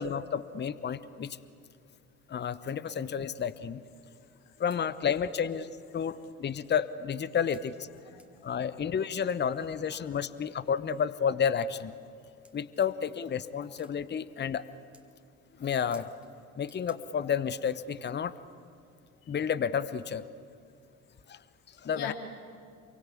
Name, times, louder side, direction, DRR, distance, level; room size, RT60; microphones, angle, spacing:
voice 1, 0.0-1.4 2.3-3.8 4.6-5.7 5.9-7.9 8.4-11.9 12.5-14.6 15.6-16.1 16.6-18.3 19.3-20.2 21.3-21.4 21.8-22.1, left 7 dB, 25° left, 16 dB, 1.0 m, -31 dB
sound 1, 4.4-4.5 4.7-4.8 5.7-5.8 6.3-6.4 7.5-7.7 8.2-8.3 9.8-10.5 11.8-11.9 12.4-12.6 13.8-14.0 14.5-14.6 14.9-15.1 15.9-16.3 16.7-17.0, right 1 dB, 5° right, 2.5 m, -58 dB
voice 2, 7.9-8.5 9.9-10.2 19.2-19.3 21.9-22.1, left 9 dB, 55° left, 4 dB, 3.5 m, -42 dB
27.5 x 23.5 x 8.6 m, 2.5 s
figure-of-eight pair, 55°, 43 cm